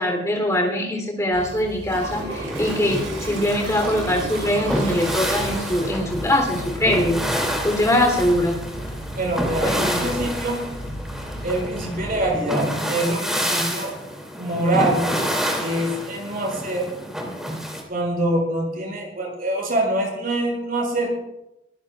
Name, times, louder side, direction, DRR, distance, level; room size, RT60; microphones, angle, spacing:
voice 1, 0.0-7.2 7.6-8.6 9.6-10.0, left 1 dB, 15° left, 1 dB, 3.4 m, -22 dB
sound 1, 1.3-12.3, equal, 35° left, 2.5 m, -35 dB
Toilet flush, 1.8-6.2, right 3 dB, 90° right, 6.0 m, -34 dB
sound 2, 2.3-17.8, equal, 5° right, 2.8 m, -29 dB
voice 2, 9.2-10.6 11.4-13.9 14.4-15.0 15.6-16.9 17.9-21.1, right 1 dB, 50° right, -1 dB, 6.7 m, -24 dB
23.0 x 16.0 x 2.5 m, 0.87 s
head